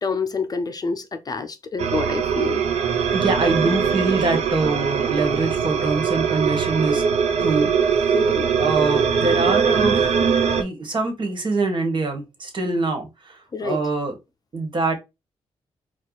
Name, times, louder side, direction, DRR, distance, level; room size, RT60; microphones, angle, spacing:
voice 1, 0.0-2.6 8.1-8.5 13.5-13.8, left 4 dB, 35° left, 0.5 m, -27 dB
sound 1, 1.8-10.6, right 6 dB, 75° right, 0.7 m, -21 dB
voice 2, 3.1-7.0 7.4-7.7 8.6-10.2 10.6-14.2 14.5-14.9, right 3 dB, 45° right, 1.5 m, -24 dB
4.5 x 2.4 x 3.9 m
cardioid pair, 85°, 11 cm